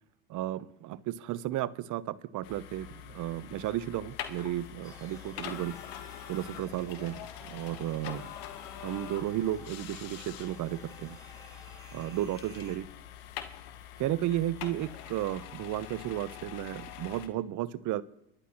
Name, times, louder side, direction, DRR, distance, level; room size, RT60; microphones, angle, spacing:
voice 1, 0.3-5.8 6.3-8.3 8.8-11.2 11.9-12.9 14.0-18.0, right 13 dB, 50° right, 17 dB, 0.8 m, -33 dB
sound 1, 2.4-17.3, left 11 dB, 70° left, 1.4 m, -44 dB
sound 2, 4.8-12.8, left 1 dB, 10° left, 5.3 m, -54 dB
28.0 x 11.5 x 3.0 m, 0.79 s
hypercardioid pair, 85°, 39 cm